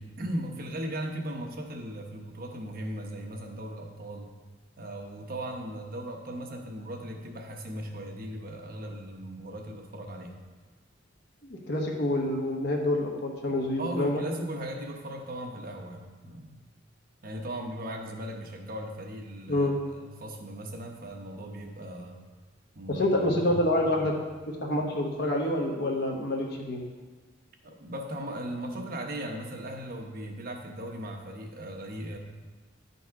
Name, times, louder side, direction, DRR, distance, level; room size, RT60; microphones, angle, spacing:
voice 1, 0.0-4.3 4.8-10.3 13.5-16.6 17.2-22.2 22.7-24.1 27.6-32.2, right 1 dB, 50° right, 2 dB, 1.0 m, -38 dB
voice 2, 11.4-14.2 19.5-19.8 22.9-24.1 24.6-26.8, left 1 dB, 60° left, 0 dB, 1.1 m, -27 dB
11.0 x 4.1 x 4.7 m, 1.4 s
head